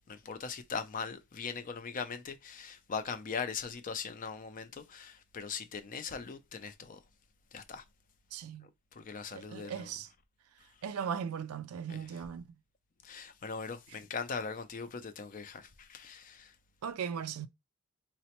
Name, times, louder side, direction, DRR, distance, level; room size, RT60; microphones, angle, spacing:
voice 1, 0.1-7.0 7.5-7.8 8.6-9.9 11.9-12.1 13.0-16.6, left 5 dB, 40° left, 0.4 m, -40 dB
voice 2, 8.3-8.7 9.3-10.1 10.8-12.6 16.8-17.5, right 7 dB, 90° right, 0.4 m, -38 dB
4.0 x 2.1 x 2.8 m
head